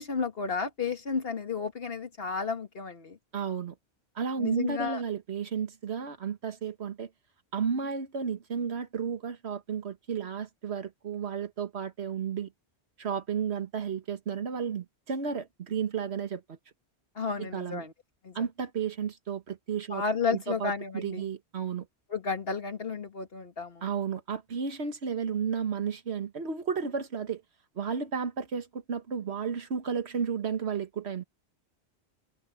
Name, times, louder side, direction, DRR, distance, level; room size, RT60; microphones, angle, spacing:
voice 1, 0.0-3.2 4.4-5.0 17.2-17.9 18.2-18.4 19.9-21.3 22.1-23.8, left 5 dB, 60° left, 2.0 m, -32 dB
voice 2, 3.3-3.7 4.1-7.1 7.5-12.5 13.0-16.6 17.4-17.8 18.3-20.0 20.3-21.9 23.8-27.4 27.8-31.2, right 6 dB, 70° right, 1.6 m, -33 dB
omnidirectional pair, 1.2 m